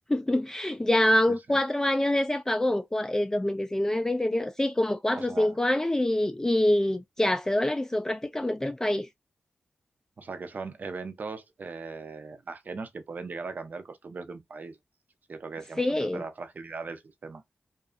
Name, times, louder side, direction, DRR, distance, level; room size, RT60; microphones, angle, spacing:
voice 1, 0.1-9.1 15.8-16.2, left 1 dB, 15° left, 0.3 m, -25 dB
voice 2, 1.3-1.6 5.2-5.6 10.2-14.8 15.3-17.4, right 4 dB, 55° right, 0.5 m, -39 dB
2.6 x 2.4 x 2.4 m
wide cardioid pair, 95°, 4 cm